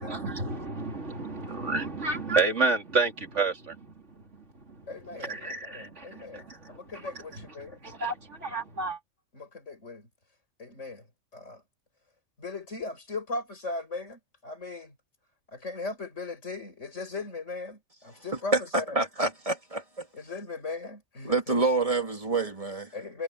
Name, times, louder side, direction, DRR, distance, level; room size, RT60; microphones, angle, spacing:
voice 1, 0.0-9.0, right 3 dB, 65° right, 3.3 m, -31 dB
voice 2, 4.9-7.8 9.3-10.1 10.6-11.0 11.3-11.6 12.4-14.9 15.5-19.0 20.1-21.6 22.9-23.2, left 3 dB, 65° left, 6.5 m, -38 dB
voice 3, 18.5-20.1 21.2-22.9, right 3 dB, 25° right, 3.1 m, -27 dB
omnidirectional pair, 1.3 m